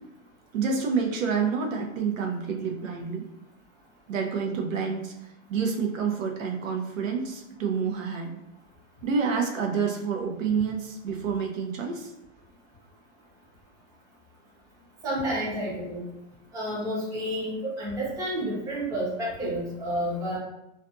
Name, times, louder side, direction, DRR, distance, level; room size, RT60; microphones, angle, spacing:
voice 1, 0.5-3.2 4.1-5.1 5.5-8.3 9.0-12.1, right 5 dB, 90° right, 2 dB, 0.7 m, -28 dB
voice 2, 15.0-16.0 16.5-20.4, equal, 10° right, -7 dB, 0.6 m, -30 dB
2.5 x 2.3 x 2.5 m, 0.86 s
hypercardioid pair, 145°, 38 cm